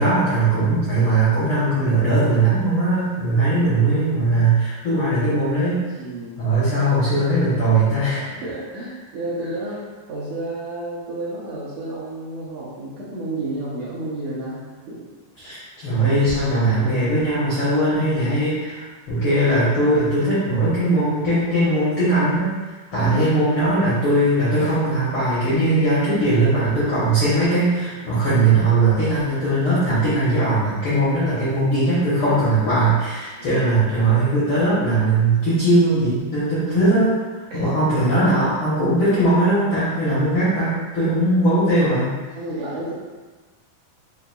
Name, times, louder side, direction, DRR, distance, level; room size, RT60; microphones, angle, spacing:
voice 1, 0.0-5.8 6.4-8.3 15.4-22.5 22.9-37.2 37.5-42.1, right 2 dB, 90° left, -11 dB, 1.2 m, -19 dB
voice 2, 3.3-3.7 6.0-6.3 8.4-9.8 10.1-15.0 18.2-18.3 23.0-23.4 31.4-31.7 33.4-33.6 36.8-36.9 37.5-37.8 41.0-41.3 42.4-42.9, right 2 dB, 75° right, -8 dB, 1.9 m, -31 dB
5.8 x 2.5 x 2.2 m, 1.3 s
omnidirectional pair, 4.1 m